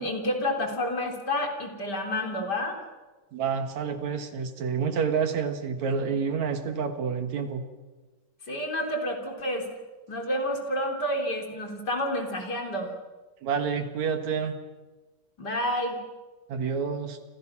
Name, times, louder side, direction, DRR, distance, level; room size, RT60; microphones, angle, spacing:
voice 1, 0.0-2.8 8.5-9.7 10.1-12.9 15.4-16.0, left 1 dB, 30° left, 3 dB, 3.8 m, -29 dB
voice 2, 3.3-7.6 13.4-14.6 16.5-17.2, right 6 dB, 60° right, 8 dB, 2.7 m, -28 dB
29.5 x 26.5 x 6.0 m, 1.2 s
omnidirectional pair, 3.9 m